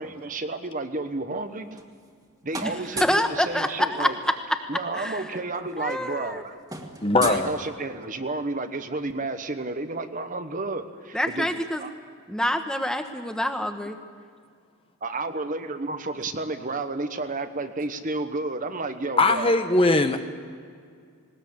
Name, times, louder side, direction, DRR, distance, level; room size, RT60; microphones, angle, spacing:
voice 1, 0.0-1.8 2.4-4.1 4.7-6.6 7.2-11.5 11.8-11.9 15.0-19.5, right 2 dB, 35° right, 8 dB, 1.1 m, -31 dB
sound 1, 1.5-2.2 2.5-3.3 4.7-4.8 5.0-5.2 5.5-8.2, right 3 dB, 15° right, 1.9 m, -38 dB
voice 2, 2.6-4.3 4.9-5.4 5.8-6.4 11.1-11.8 12.3-14.0, equal, 5° left, 7 dB, 1.2 m, -26 dB
voice 3, 7.0-7.5 19.2-20.2, left 2 dB, 25° left, 7 dB, 1.0 m, -20 dB
20.0 x 19.5 x 8.6 m, 2.2 s
head